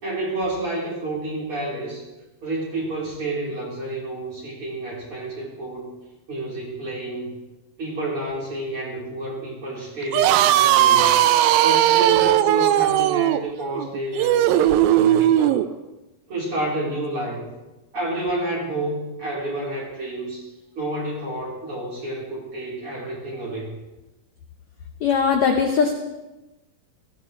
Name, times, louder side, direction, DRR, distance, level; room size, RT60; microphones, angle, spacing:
voice 1, 0.0-2.0 2.4-5.9 6.3-7.4 7.8-11.2 11.6-15.6 16.3-17.5 17.9-20.5 20.8-23.8, right 1 dB, 35° right, -5 dB, 4.6 m, -29 dB
sound 1, 10.0-15.7, right 12 dB, 80° right, 2.3 m, -18 dB
voice 2, 25.0-25.9, left 6 dB, 70° left, 3 dB, 1.7 m, -19 dB
18.0 x 15.5 x 3.2 m, 1.1 s
omnidirectional pair, 4.4 m